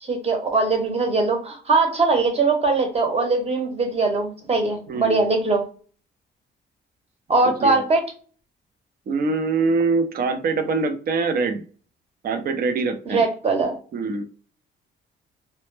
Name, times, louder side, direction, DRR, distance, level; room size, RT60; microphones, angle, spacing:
voice 1, 0.0-5.6 7.3-8.0 13.1-13.7, right 3 dB, 30° right, 3 dB, 0.9 m, -21 dB
voice 2, 4.9-5.2 7.6-7.8 9.1-11.6 12.2-13.2 13.9-14.2, right 4 dB, 50° right, 7 dB, 0.5 m, -23 dB
2.1 x 2.0 x 3.1 m, 0.41 s
cardioid pair, 90°, 20 cm